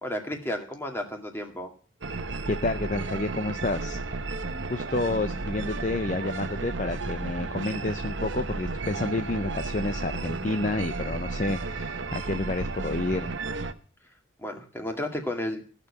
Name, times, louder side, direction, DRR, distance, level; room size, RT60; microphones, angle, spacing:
voice 1, 0.0-1.7 14.4-15.6, left 1 dB, 10° left, 3 dB, 2.0 m, -32 dB
sound 1, 2.0-13.7, right 3 dB, 60° right, 1.0 m, -33 dB
voice 2, 2.5-4.0 4.7-13.3, left 2 dB, 35° left, 9 dB, 0.6 m, -29 dB
15.5 x 6.8 x 8.5 m, 0.41 s
head